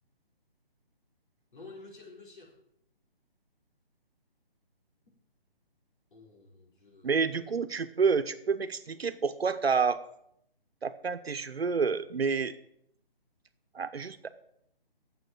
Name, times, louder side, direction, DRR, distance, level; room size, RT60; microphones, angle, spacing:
voice 1, 1.5-2.6 5.0-5.1 6.1-7.4, left 3 dB, 55° left, -2 dB, 4.8 m, -51 dB
voice 2, 7.0-10.0 10.8-12.5 13.7-14.3, right 5 dB, 90° right, 10 dB, 1.2 m, -29 dB
9.6 x 7.7 x 9.1 m, 0.73 s
hypercardioid pair, 180°, 30 cm